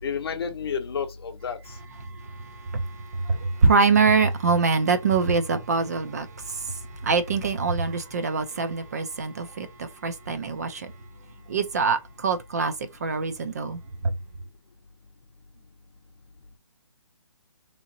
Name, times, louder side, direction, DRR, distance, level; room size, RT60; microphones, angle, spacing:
voice 1, 0.0-1.8, left 6 dB, 50° left, 0.7 m, -31 dB
voice 2, 2.0-10.9 11.5-14.1, right 4 dB, 30° right, 0.4 m, -25 dB
3.7 x 2.8 x 2.6 m
hypercardioid pair, 160°, 17 cm